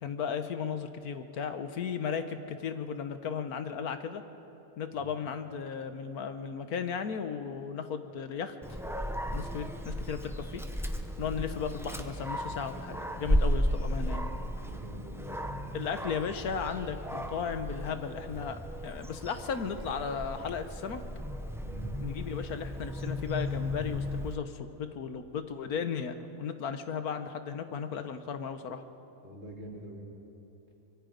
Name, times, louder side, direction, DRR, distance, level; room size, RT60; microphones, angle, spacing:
voice 1, 0.0-4.2 4.8-8.8 9.3-10.6 11.2-14.3 15.7-21.0 22.0-28.8, left 6 dB, 90° left, 9 dB, 1.6 m, -35 dB
Dog, 8.6-24.3, equal, ahead, 0.7 m, -34 dB
voice 2, 14.6-15.5 21.6-21.9 29.2-30.0, equal, 55° right, -2 dB, 3.5 m, -45 dB
24.5 x 22.5 x 5.2 m, 2.9 s
omnidirectional pair, 1.5 m